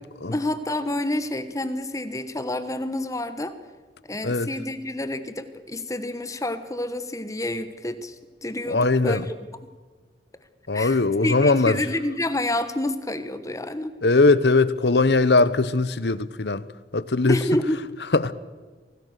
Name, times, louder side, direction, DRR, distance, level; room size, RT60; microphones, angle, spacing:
voice 1, 0.3-3.5 4.1-9.3 10.7-13.9 17.3-18.0, left 1 dB, 20° left, 1.2 m, -28 dB
voice 2, 8.7-9.3 10.7-11.8 14.0-16.7 16.9-17.4 18.1-18.3, left 3 dB, 70° left, 1.0 m, -20 dB
24.5 x 17.5 x 6.7 m
head